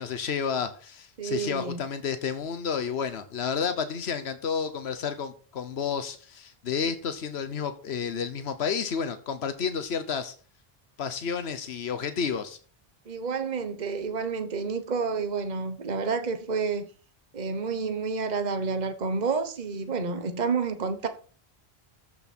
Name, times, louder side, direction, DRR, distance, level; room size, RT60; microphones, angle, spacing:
voice 1, 0.0-10.3 11.0-12.6, left 6 dB, 85° left, 1.2 m, -31 dB
voice 2, 1.2-1.8 13.1-16.9 17.3-21.1, right 5 dB, 45° right, 1.2 m, -29 dB
14.0 x 6.7 x 4.3 m
omnidirectional pair, 1.1 m